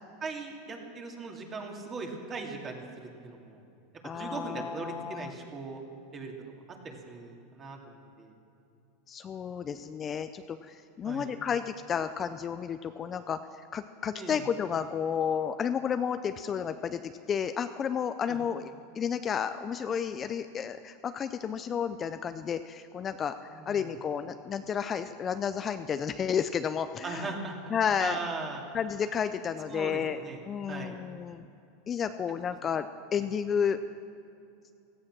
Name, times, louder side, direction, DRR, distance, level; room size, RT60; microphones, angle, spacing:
voice 1, 0.2-3.6 4.2-5.8 6.1-6.3 6.8-8.4 11.0-11.3 14.1-14.5 18.3-18.4 23.5-23.9 27.0-27.7 28.0-28.6 29.7-30.4 30.7-30.9, right 3 dB, 30° right, 1 dB, 2.5 m, -39 dB
voice 2, 4.0-5.3 9.1-23.3 23.7-27.3 27.7-28.2 28.7-30.2 30.4-31.4 31.9-32.9 33.1-33.8, left 7 dB, 30° left, 10 dB, 0.5 m, -32 dB
16.5 x 14.5 x 6.1 m, 2.7 s
supercardioid pair, 125°, 0 cm